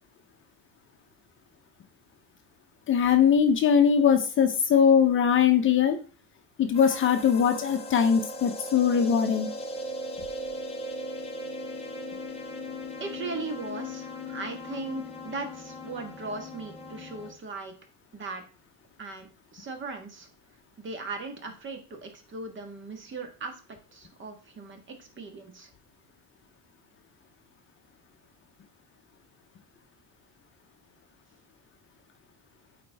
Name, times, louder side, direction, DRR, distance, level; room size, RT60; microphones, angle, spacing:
voice 1, 2.9-6.0 6.6-9.5, left 7 dB, 35° left, 6 dB, 0.8 m, -21 dB
sound 1, 6.7-17.3, left 1 dB, 15° left, 1.0 m, -38 dB
voice 2, 13.0-17.7 18.1-18.4 19.0-20.3 20.8-23.6 23.9-25.7, right 3 dB, 35° right, 5 dB, 1.5 m, -38 dB
8.4 x 4.4 x 3.5 m, 0.37 s
cardioid pair, 135°, 35 cm